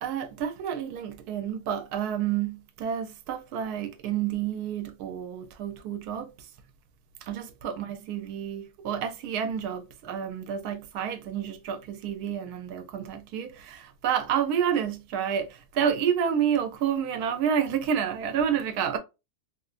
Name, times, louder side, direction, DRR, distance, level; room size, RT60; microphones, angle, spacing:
voice 1, 0.0-6.3 7.2-19.0, right 8 dB, 80° right, 1.1 m, -29 dB
3.3 x 2.5 x 2.4 m
omnidirectional pair, 1.6 m